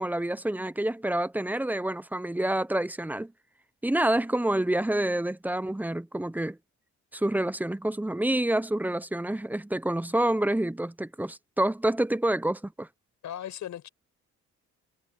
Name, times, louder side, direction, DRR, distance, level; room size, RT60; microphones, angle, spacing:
voice 1, 0.0-3.3 3.8-6.6 7.1-12.9, right 1 dB, 5° right, 0.8 m, -28 dB
voice 2, 13.2-13.9, left 11 dB, 70° left, 6.1 m, -37 dB
cardioid pair, 90°, 30 cm